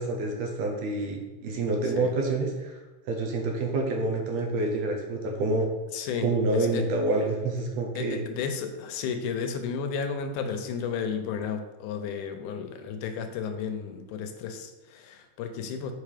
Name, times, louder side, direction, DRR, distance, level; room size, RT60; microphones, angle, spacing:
voice 1, 0.0-2.8 3.1-5.7 6.2-8.2, right 2 dB, 70° right, 1 dB, 1.8 m, -27 dB
voice 2, 5.9-6.3 6.5-6.8 8.0-15.9, left 6 dB, 85° left, 6 dB, 2.2 m, -33 dB
5.4 x 4.6 x 4.9 m, 1.2 s
omnidirectional pair, 3.5 m